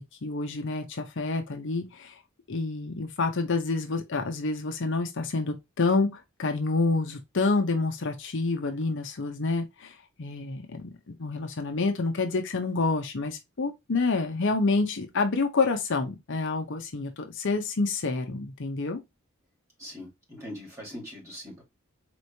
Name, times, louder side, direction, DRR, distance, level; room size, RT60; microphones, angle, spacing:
voice 1, 0.0-2.2 2.5-19.0, left 3 dB, 60° left, 0.7 m, -28 dB
voice 2, 19.8-21.6, left 1 dB, 15° right, 2.7 m, -41 dB
4.2 x 3.1 x 2.7 m
head